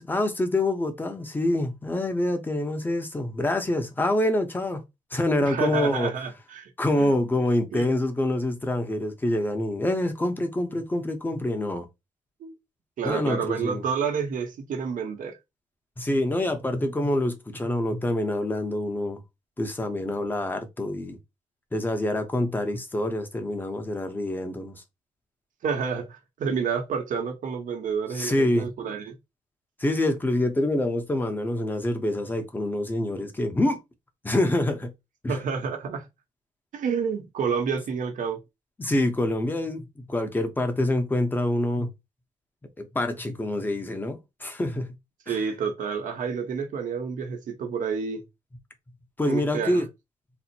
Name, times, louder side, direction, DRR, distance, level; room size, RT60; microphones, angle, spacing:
voice 1, 0.0-4.8 5.1-6.1 6.8-11.9 13.0-13.8 16.0-19.2 19.6-21.2 21.7-24.8 28.1-28.7 29.8-33.8 34.2-34.9 35.2-35.4 38.8-41.9 42.8-44.9 45.3-45.4 49.2-49.9, left 1 dB, 15° left, 0.8 m, -26 dB
voice 2, 5.4-6.7 7.0-7.1 7.7-7.8 12.4-12.5 13.0-15.4 25.6-29.1 35.3-36.0 36.7-38.4 45.3-48.2 49.2-49.8, right 6 dB, 70° right, 1.1 m, -29 dB
4.2 x 2.1 x 4.3 m
wide cardioid pair, 155°, 14 cm